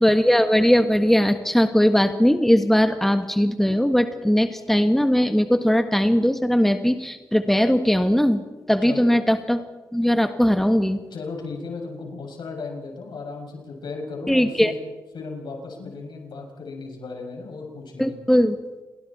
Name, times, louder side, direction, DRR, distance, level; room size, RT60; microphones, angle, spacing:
voice 1, 0.0-8.4 8.7-9.6 9.9-11.0 14.3-14.7 18.0-18.6, equal, 5° left, 7 dB, 1.6 m, -19 dB
voice 2, 11.1-14.8 15.1-18.2, left 4 dB, 75° left, 1 dB, 6.8 m, -35 dB
29.5 x 22.5 x 4.4 m, 1.2 s
cardioid pair, 60°, 8 cm